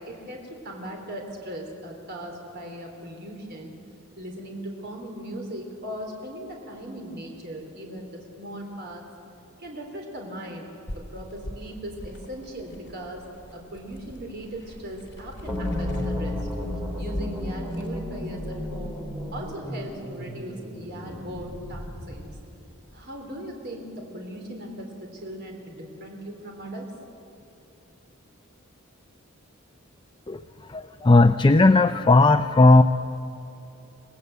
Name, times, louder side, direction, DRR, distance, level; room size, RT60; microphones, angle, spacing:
voice 1, 0.0-3.7 4.2-9.0 9.6-10.7 11.1-13.2 13.5-16.5 17.0-19.0 19.3-22.3 22.9-26.9, right 1 dB, 50° right, 1 dB, 3.6 m, -38 dB
sound 1, 10.9-17.9, equal, 55° left, 3.5 m, -43 dB
sound 2, 15.5-22.4, left 1 dB, 5° right, 3.8 m, -33 dB
voice 2, 30.7-32.8, left 2 dB, 20° left, 10 dB, 0.5 m, -16 dB
25.5 x 19.0 x 8.1 m, 2.8 s
head